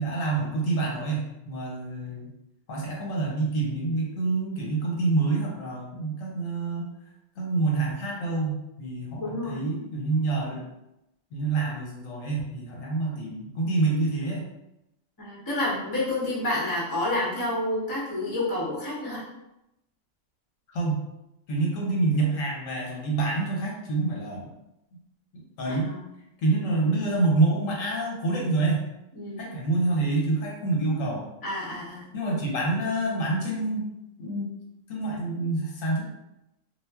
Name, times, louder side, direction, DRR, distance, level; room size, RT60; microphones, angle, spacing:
voice 1, 0.0-2.3 2.7-6.9 7.4-10.6 11.3-14.5 20.7-21.0 21.5-24.5 25.6-25.9 26.4-28.8 29.4-31.3 32.1-33.9 34.2-34.5 34.9-36.0, right 3 dB, 80° left, -2 dB, 1.2 m, -27 dB
voice 2, 9.2-9.7 15.2-19.2 25.7-26.1 29.1-29.4 31.4-32.1, left 1 dB, 25° left, -7 dB, 0.6 m, -29 dB
2.4 x 2.0 x 3.4 m, 0.88 s
omnidirectional pair, 1.3 m